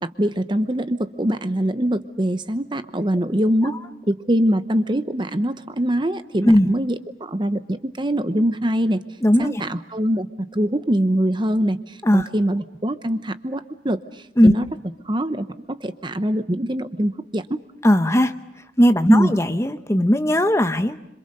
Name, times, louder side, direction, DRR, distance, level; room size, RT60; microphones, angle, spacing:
voice 1, 0.0-3.8 4.1-9.0 9.4-10.3 10.5-14.0 14.4-14.7 15.1-15.5 15.8-17.6 19.1-19.3, equal, 25° right, 11 dB, 0.9 m, -23 dB
voice 2, 9.2-9.6 12.0-12.3 14.4-14.5 17.8-18.3 18.8-21.0, equal, 15° left, 10 dB, 0.9 m, -17 dB
27.0 x 26.5 x 6.6 m, 0.84 s
head